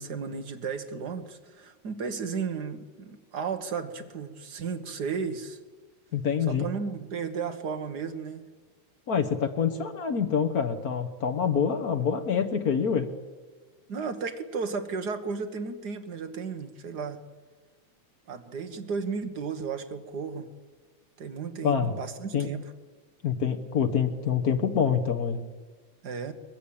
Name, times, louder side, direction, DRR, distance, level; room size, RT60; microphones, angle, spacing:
voice 1, 0.0-5.6 6.5-8.4 13.9-17.2 18.3-20.5 21.2-22.6 26.0-26.3, right 5 dB, 55° right, 8 dB, 1.1 m, -34 dB
voice 2, 6.1-6.6 9.1-13.1 21.6-21.9 22.3-22.5 23.2-25.4, left 7 dB, 85° left, 7 dB, 0.8 m, -26 dB
22.5 x 21.0 x 8.7 m, 1.4 s
omnidirectional pair, 3.5 m